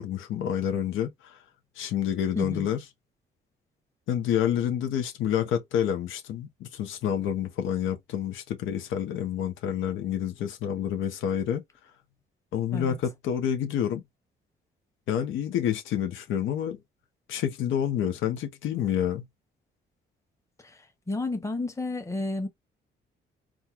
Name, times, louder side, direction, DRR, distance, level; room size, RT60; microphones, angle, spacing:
voice 1, 0.0-1.4 1.8-2.8 4.1-11.6 12.5-14.0 15.1-16.8 17.3-19.3, left 9 dB, 80° left, 0.8 m, -28 dB
voice 2, 2.3-2.7 12.7-13.0 20.6-22.5, left 2 dB, 15° left, 1.0 m, -32 dB
3.6 x 2.3 x 2.9 m
cardioid pair, 90°, 20 cm